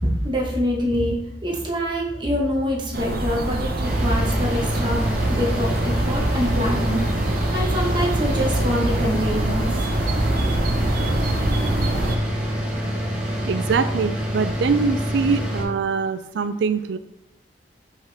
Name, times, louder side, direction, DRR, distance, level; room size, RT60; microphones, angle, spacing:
voice 1, 0.0-1.2 1.4-7.2 7.5-9.8, equal, 25° right, -1 dB, 1.2 m, -25 dB
sound 1, 2.9-12.2, right 1 dB, 55° right, 0.8 m, -24 dB
sound 2, 3.8-15.6, equal, 5° right, 1.4 m, -26 dB
voice 2, 13.5-17.0, right 5 dB, 80° right, 11 dB, 0.4 m, -23 dB
5.7 x 5.5 x 3.5 m, 0.89 s
head